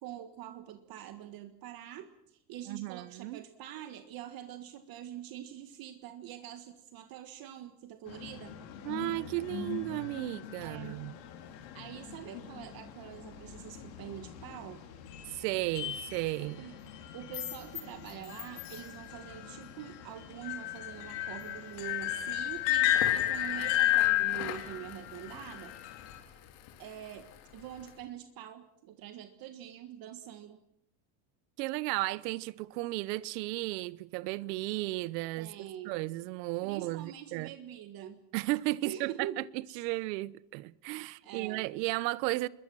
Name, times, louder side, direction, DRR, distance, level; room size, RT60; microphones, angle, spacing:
voice 1, 0.0-8.6 10.6-11.1 11.7-14.8 16.4-16.8 17.1-25.8 26.8-30.6 35.4-36.0 36.6-38.2 38.8-39.8 40.9-41.7, right 11 dB, 45° right, 1.6 m, -45 dB
voice 2, 2.7-3.4 8.8-11.1 15.3-16.6 31.6-37.5 38.3-39.4 39.8-42.5, right 20 dB, 85° right, 1.0 m, -34 dB
sound 1, 8.1-26.2, left 13 dB, 90° left, 4.3 m, -34 dB
Crackle, 22.8-28.0, left 10 dB, 70° left, 3.7 m, -46 dB
27.0 x 22.0 x 6.2 m
cardioid pair, 155°, 49 cm